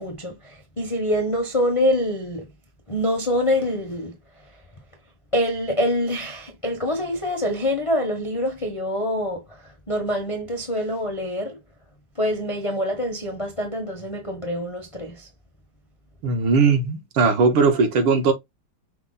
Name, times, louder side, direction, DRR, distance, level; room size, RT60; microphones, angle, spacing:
voice 1, 0.0-2.5 2.9-4.2 5.3-11.6 12.2-15.3, equal, 50° left, 0.3 m, -25 dB
voice 2, 16.2-18.3, right 4 dB, 80° right, 1.9 m, -19 dB
5.8 x 2.1 x 3.9 m
omnidirectional pair, 2.3 m